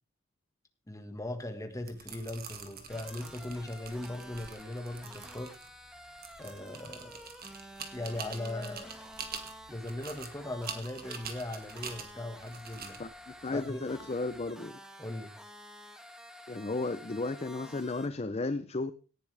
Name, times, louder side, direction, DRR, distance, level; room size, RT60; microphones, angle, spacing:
voice 1, 0.9-5.5 6.4-7.3 7.9-9.0 9.7-13.0 13.5-13.9 15.0-15.3, left 1 dB, 15° left, 1.6 m, -39 dB
sound 1, 1.7-14.5, right 6 dB, 50° right, 2.0 m, -46 dB
sound 2, 2.9-18.1, equal, 5° right, 1.4 m, -50 dB
voice 2, 13.0-14.8 16.5-18.9, left 3 dB, 30° left, 0.6 m, -34 dB
17.5 x 9.9 x 3.4 m
head